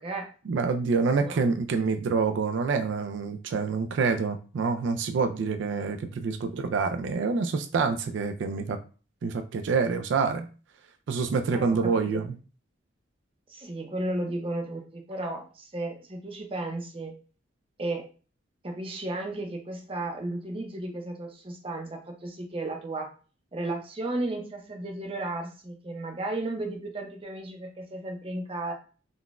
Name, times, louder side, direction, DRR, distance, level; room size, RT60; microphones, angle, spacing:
voice 1, 0.5-8.8 9.2-10.5 11.1-12.3, right 4 dB, 80° right, 6 dB, 0.3 m, -27 dB
voice 2, 11.5-12.3 13.5-17.1 17.8-18.1 18.6-23.1 23.5-28.7, right 2 dB, 30° right, 2 dB, 0.6 m, -34 dB
3.8 x 2.2 x 2.4 m, 0.37 s
head